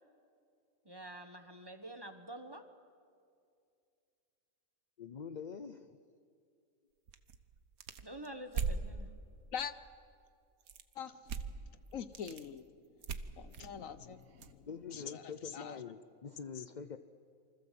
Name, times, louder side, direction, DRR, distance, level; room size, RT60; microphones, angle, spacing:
voice 1, 0.8-2.6 8.0-9.1, right 1 dB, 20° right, 7 dB, 1.4 m, -47 dB
voice 2, 5.0-6.0 14.7-17.0, left 6 dB, 45° left, 10 dB, 0.7 m, -45 dB
sound 1, 7.1-8.9 10.6-10.9 11.3-11.6 11.9-12.5 13.0-14.5, right 5 dB, 90° right, 1.5 m, -39 dB
voice 3, 11.9-12.6 13.4-15.8 16.5-16.6, left 8 dB, 70° left, 13 dB, 1.3 m, -43 dB
28.0 x 24.5 x 7.7 m, 2.4 s
omnidirectional pair, 1.5 m